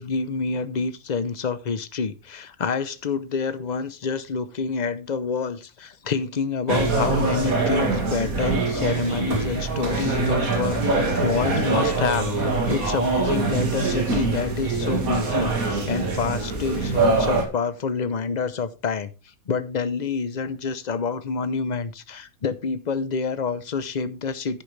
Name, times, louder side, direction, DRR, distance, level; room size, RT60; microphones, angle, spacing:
voice 1, 0.0-19.1 19.5-24.6, left 5 dB, 40° left, 13 dB, 0.7 m, -27 dB
sound 1, 6.7-17.4, right 3 dB, 70° right, 2.6 m, -24 dB
10.5 x 9.6 x 3.3 m, 0.29 s
omnidirectional pair, 1.5 m